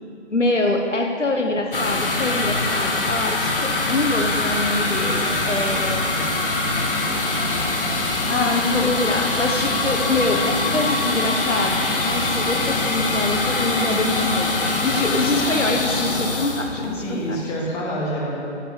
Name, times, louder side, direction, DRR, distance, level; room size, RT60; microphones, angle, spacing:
voice 1, 0.3-6.1 8.3-14.6 14.8-17.4, left 2 dB, 85° left, 3 dB, 1.4 m, -24 dB
sound 1, 1.7-17.4, left 2 dB, 50° left, 1.7 m, -23 dB
voice 2, 5.7-6.3 17.0-18.3, right 1 dB, 10° left, -4 dB, 1.5 m, -28 dB
14.0 x 5.7 x 8.6 m, 2.5 s
figure-of-eight pair, 150°, 36 cm